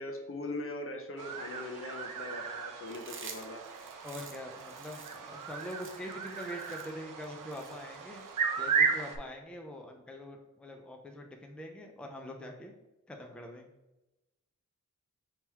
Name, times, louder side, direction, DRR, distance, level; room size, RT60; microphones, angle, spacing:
voice 1, 0.0-3.6, left 2 dB, 45° left, 3 dB, 0.7 m, -40 dB
sound 1, 1.2-9.2, right 5 dB, 85° right, 0.6 m, -35 dB
Chewing mastication, 2.9-8.3, right 5 dB, 40° right, 0.6 m, -50 dB
voice 2, 4.0-8.2 8.6-12.7 13.1-13.7, left 1 dB, 5° left, 2 dB, 0.5 m, -44 dB
3.7 x 3.0 x 4.5 m, 0.99 s
wide cardioid pair, 110°, 31 cm